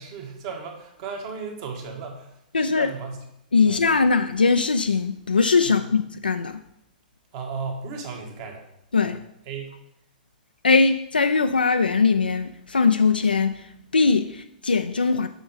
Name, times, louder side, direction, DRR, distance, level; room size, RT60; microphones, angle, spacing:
voice 1, 0.0-3.2 3.6-3.8 5.6-5.9 7.3-8.7 9.0-9.2 9.4-9.7, right 5 dB, 40° right, 1.6 m, -35 dB
voice 2, 2.5-2.9 3.5-6.6 8.9-9.2 10.6-13.6 13.9-15.3, left 4 dB, 80° left, 0.3 m, -21 dB
7.1 x 6.0 x 4.0 m
figure-of-eight pair, 105°, 5 cm